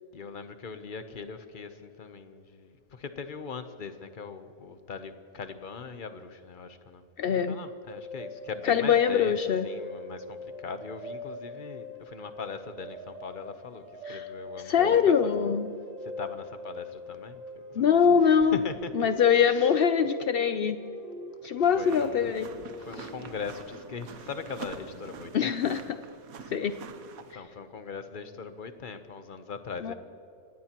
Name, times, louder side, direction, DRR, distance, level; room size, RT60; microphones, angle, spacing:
voice 1, 0.1-7.0 7.3-15.5 16.0-17.4 17.7-17.9 18.2-19.1 19.4-19.9 21.6-25.7 27.3-29.9, left 5 dB, 40° left, 9 dB, 0.8 m, -40 dB
voice 2, 7.2-7.6 8.6-9.7 14.1-14.3 14.7-15.7 17.8-18.6 18.9-20.8 21.4-22.5 25.3-25.8 26.5-26.7 29.8-29.9, left 7 dB, 90° left, 10 dB, 0.5 m, -23 dB
sound 1, 7.9-25.3, left 1 dB, 25° right, 1.7 m, -43 dB
sound 2, 21.7-27.3, right 6 dB, 65° right, 1.2 m, -46 dB
26.5 x 17.5 x 3.0 m, 2.7 s
omnidirectional pair, 1.7 m